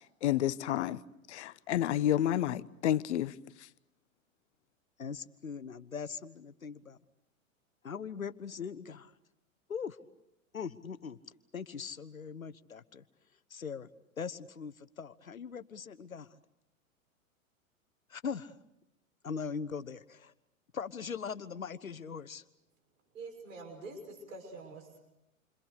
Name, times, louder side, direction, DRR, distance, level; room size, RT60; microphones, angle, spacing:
voice 1, 0.2-1.0 1.3-3.3, left 12 dB, 55° left, 1.0 m, -29 dB
voice 2, 5.0-7.0 7.8-9.1 9.7-10.0 10.5-11.2 11.5-13.0 13.5-13.9 14.2-16.4 18.1-18.5 19.2-20.3 20.7-22.4, left 6 dB, 80° left, 1.3 m, -40 dB
voice 3, 23.1-25.0, right 3 dB, 70° right, 6.4 m, -46 dB
29.0 x 25.5 x 6.6 m
figure-of-eight pair, 100°, 41 cm